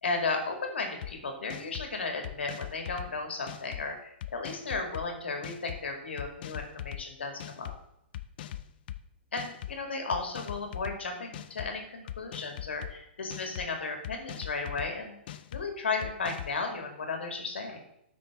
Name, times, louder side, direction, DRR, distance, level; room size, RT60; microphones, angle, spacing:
voice 1, 0.0-7.7 9.3-15.1 15.5-17.8, left 3 dB, 85° left, 3 dB, 2.3 m, -34 dB
sound 1, 1.0-1.1 1.5-1.9 2.2-3.1 3.5-3.8 4.2-5.0 5.4-5.8 6.2-7.0 7.4-7.8 8.1-9.0 9.4-9.8 10.1-11.0 11.3-11.7 12.1-12.9 13.3-13.7 14.0-14.9 15.3-15.6 16.0-16.5, left 12 dB, 55° left, 0.6 m, -40 dB
13.5 x 6.0 x 3.8 m, 0.77 s
hypercardioid pair, 125°, 6 cm